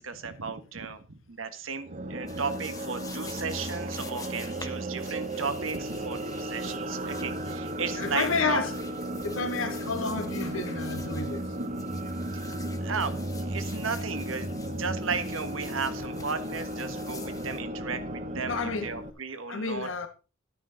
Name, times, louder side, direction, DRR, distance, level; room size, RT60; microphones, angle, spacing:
voice 1, 0.0-8.7 9.9-10.0 11.6-11.7 12.3-12.5 12.8-19.9, right 5 dB, 80° right, 1.4 m, -35 dB
sound 1, 1.8-19.1, right 1 dB, 40° right, 0.9 m, -35 dB
sound 2, 2.3-17.6, left 4 dB, 20° left, 1.4 m, -48 dB
voice 2, 7.9-8.7 9.2-11.5 18.4-18.9 19.5-20.1, left 4 dB, 80° left, 1.4 m, -30 dB
12.0 x 9.4 x 3.9 m
head